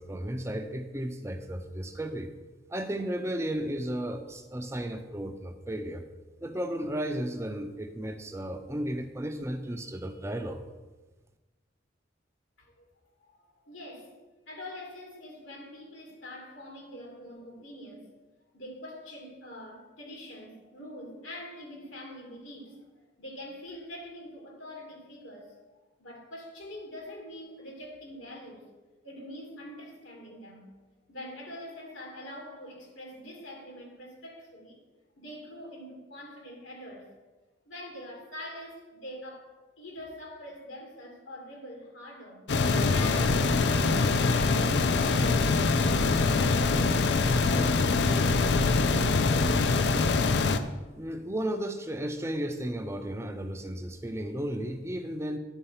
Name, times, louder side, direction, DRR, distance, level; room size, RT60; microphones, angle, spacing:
voice 1, 0.0-2.3 2.7-6.1 6.4-10.6 50.9-55.4, right 1 dB, 15° right, 0.6 m, -34 dB
voice 2, 13.6-14.1 14.5-18.1 18.5-22.8 23.2-25.5 26.0-30.7 31.1-34.8 35.2-37.1 37.7-42.5 42.8-45.9, left 1 dB, 85° left, 2.6 m, -44 dB
sound 1, 42.5-50.6, left 3 dB, 60° left, 0.5 m, -24 dB
10.0 x 4.4 x 5.7 m
head